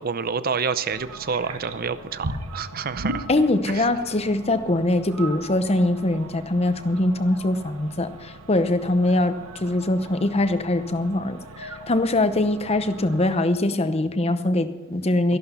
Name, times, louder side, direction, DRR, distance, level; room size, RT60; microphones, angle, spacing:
voice 1, 0.0-3.3 3.7-3.9, right 5 dB, 45° right, 14 dB, 0.6 m, -28 dB
sound 1, 0.9-13.3, right 2 dB, 90° right, 1.2 m, -38 dB
voice 2, 3.3-15.4, left 2 dB, 30° left, 10 dB, 0.8 m, -22 dB
14.0 x 11.5 x 5.6 m, 1.2 s
head